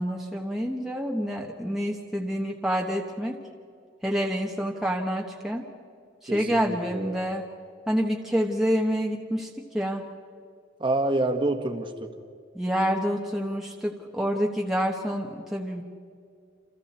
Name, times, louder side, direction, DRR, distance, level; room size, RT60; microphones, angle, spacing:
voice 1, 0.0-3.4 4.0-5.6 6.2-7.4 7.9-10.1 12.5-15.8, equal, ahead, -1 dB, 1.3 m, -28 dB
voice 2, 6.3-7.3 10.8-12.1, right 2 dB, 25° right, 6 dB, 1.6 m, -27 dB
28.5 x 27.5 x 4.3 m, 2.3 s
head